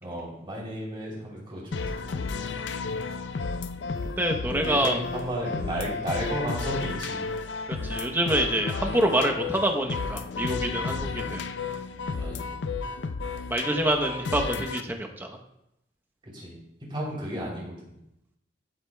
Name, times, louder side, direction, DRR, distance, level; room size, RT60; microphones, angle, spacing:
voice 1, 0.0-2.3 4.4-7.2 10.7-11.3 12.1-12.6 16.3-16.6 16.9-17.8, equal, 30° right, -4 dB, 3.1 m, -34 dB
sound 1, 1.7-14.8, left 4 dB, 85° left, 0.5 m, -32 dB
voice 2, 4.2-5.0 7.8-11.4 13.5-15.4, right 1 dB, 10° right, 2 dB, 0.8 m, -26 dB
14.5 x 7.8 x 2.2 m, 0.84 s
head